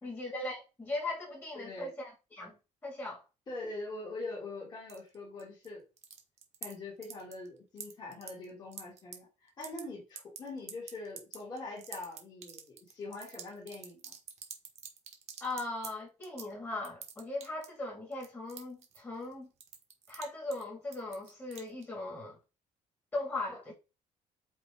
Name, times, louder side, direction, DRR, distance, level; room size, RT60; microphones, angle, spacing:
voice 1, 0.0-3.2 15.4-19.5 20.1-22.4 23.1-23.7, left 2 dB, 15° left, 2.6 m, -39 dB
voice 2, 1.5-1.9 3.5-5.8 6.6-14.1, left 2 dB, 30° left, 3.2 m, -43 dB
sound 1, 4.9-5.7 6.0-6.7 7.0-7.5 7.8-9.1 9.5-9.8 10.2-15.9 16.2-16.5 16.8-17.8 18.1-19.3 19.6-20.2 20.5-20.6 20.9-21.8, right 8 dB, 55° right, 1.6 m, -45 dB
8.7 x 3.4 x 3.9 m
cardioid pair, 170°, 13 cm